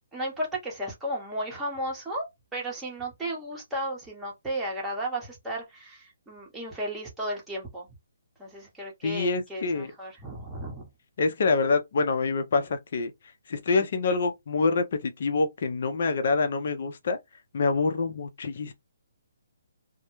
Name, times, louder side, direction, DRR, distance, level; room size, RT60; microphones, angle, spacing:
voice 1, 0.1-2.3 2.5-7.9 8.4-10.9, right 1 dB, 5° right, 0.9 m, -34 dB
voice 2, 9.0-9.9 11.2-13.1 13.5-17.2 17.5-18.7, left 4 dB, 55° left, 0.6 m, -26 dB
2.2 x 2.1 x 3.0 m
hypercardioid pair, 150°, 0 cm